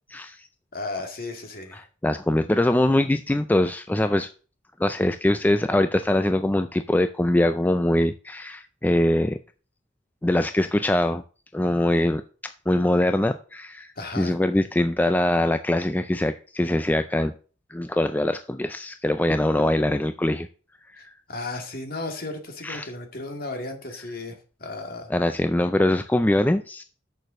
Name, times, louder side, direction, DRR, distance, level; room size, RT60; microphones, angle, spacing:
voice 1, 0.1-0.5 1.7-4.3 4.8-9.4 10.2-11.2 11.5-17.3 17.7-20.5 20.9-21.1 22.6-22.9 25.1-26.8, left 1 dB, 10° left, 10 dB, 0.3 m, -23 dB
voice 2, 0.7-1.8 14.0-14.4 21.0-25.1, left 2 dB, 50° left, 4 dB, 2.0 m, -35 dB
6.7 x 6.6 x 6.2 m, 0.37 s
head